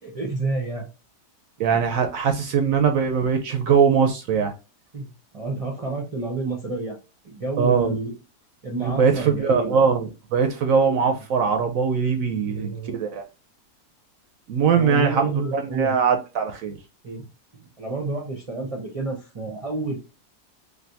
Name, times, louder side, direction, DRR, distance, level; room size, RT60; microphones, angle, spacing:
voice 1, 0.0-0.9 4.9-5.1 5.3-7.0 7.2-8.1 8.6-9.8 12.5-13.0 14.7-15.9 17.0-17.2 17.8-20.0, right 3 dB, 40° right, 0.5 m, -29 dB
voice 2, 1.6-4.5 7.6-8.0 8.8-13.2 14.5-16.8, right 6 dB, 70° right, 0.8 m, -21 dB
3.3 x 2.5 x 2.6 m
omnidirectional pair, 1.7 m